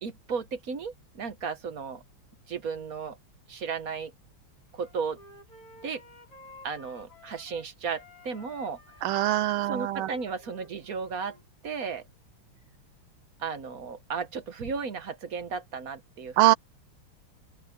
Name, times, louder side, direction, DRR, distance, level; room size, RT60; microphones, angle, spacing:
voice 1, 0.0-2.0 2.5-3.2 3.5-4.1 4.7-5.2 5.8-6.0 6.6-8.8 9.6-11.4 11.6-12.1 13.4-16.5, right 5 dB, 50° right, 1.4 m, -34 dB
Wind instrument woodwind instrument, 4.8-7.7 7.9-11.4, left 2 dB, 90° left, 7.6 m, -53 dB
voice 2, 9.0-10.1 16.4-16.5, right 15 dB, 80° right, 1.4 m, -23 dB
open air
omnidirectional pair, 2.4 m